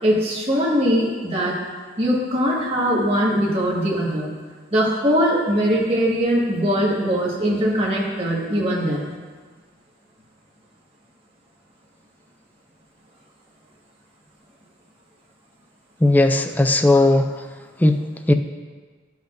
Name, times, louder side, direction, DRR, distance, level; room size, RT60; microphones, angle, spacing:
voice 1, 0.0-1.6 2.0-4.3 4.7-9.1, equal, 30° right, -5 dB, 1.6 m, -21 dB
voice 2, 16.0-17.5 17.8-18.3, left 2 dB, 10° left, 6 dB, 0.3 m, -17 dB
11.5 x 5.8 x 2.6 m, 1.5 s
head